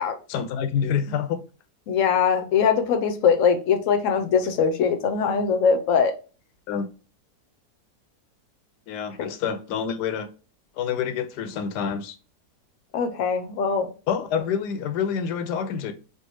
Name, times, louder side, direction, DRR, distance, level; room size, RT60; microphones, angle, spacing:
voice 1, 0.3-1.4 6.7-6.9 8.9-10.3 10.8-12.2 14.1-15.9, left 7 dB, 85° left, 1.2 m, -27 dB
voice 2, 1.9-6.1 9.2-9.3 12.9-13.9, left 6 dB, 65° left, 0.8 m, -21 dB
3.4 x 2.4 x 2.9 m
omnidirectional pair, 1.7 m